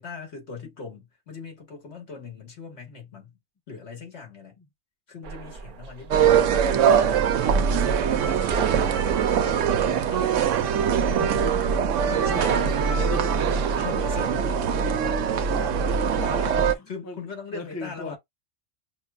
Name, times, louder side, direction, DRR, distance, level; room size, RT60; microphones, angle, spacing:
voice 1, 0.0-3.4 3.7-4.6 5.1-9.1 9.4-10.3 11.2-11.5 12.0-12.6 13.7-16.5 16.9-18.2, left 5 dB, 65° left, 1.6 m, -40 dB
sound 1, 5.2-13.9, right 6 dB, 55° right, 0.6 m, -36 dB
sound 2, 6.1-16.7, right 7 dB, 85° right, 0.9 m, -22 dB
voice 2, 12.0-13.6 16.2-17.2 17.5-18.2, left 3 dB, 25° left, 0.3 m, -36 dB
5.7 x 2.1 x 2.3 m
omnidirectional pair, 1.3 m